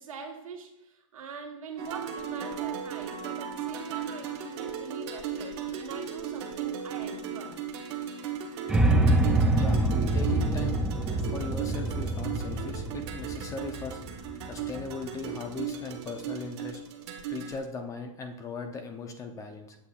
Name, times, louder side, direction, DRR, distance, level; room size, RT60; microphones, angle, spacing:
voice 1, 0.0-7.6, right 5 dB, 80° right, 2 dB, 1.4 m, -43 dB
sound 1, 1.8-17.6, right 7 dB, 50° right, 1.1 m, -36 dB
sound 2, 8.7-14.8, right 2 dB, 5° right, 0.4 m, -26 dB
voice 2, 9.5-9.9 10.1-10.8 11.2-16.8 17.3-19.8, left 4 dB, 20° left, 5 dB, 0.7 m, -39 dB
7.9 x 6.7 x 2.4 m, 0.82 s
hypercardioid pair, 130°, 17 cm